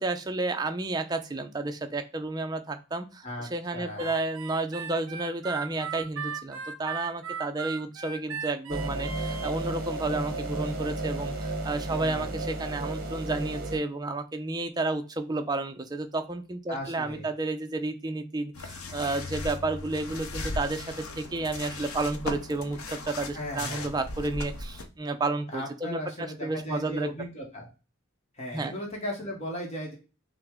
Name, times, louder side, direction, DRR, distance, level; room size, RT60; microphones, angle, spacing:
voice 1, 0.0-27.1 28.5-28.7, right 2 dB, 20° right, 7 dB, 0.4 m, -31 dB
voice 2, 3.2-4.1 11.9-12.4 16.7-17.3 23.3-23.9 25.5-27.7 28.3-30.0, equal, 30° left, 0 dB, 0.9 m, -37 dB
Harmonica, 4.0-9.5, right 6 dB, 75° right, 0.6 m, -37 dB
sound 1, 8.7-13.8, right 2 dB, 45° right, 0.9 m, -33 dB
sound 2, 18.5-24.9, left 2 dB, 85° left, 0.7 m, -37 dB
5.9 x 2.1 x 3.5 m, 0.33 s
head